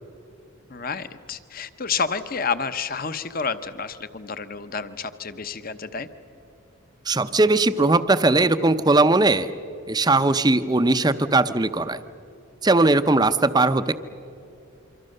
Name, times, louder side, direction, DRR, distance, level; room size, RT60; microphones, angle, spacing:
voice 1, 0.7-6.1, left 5 dB, 40° left, 12 dB, 0.9 m, -29 dB
voice 2, 7.1-9.5 9.9-12.0 12.6-13.9, right 2 dB, 20° right, 11 dB, 0.6 m, -19 dB
26.5 x 25.0 x 6.6 m, 2.7 s
head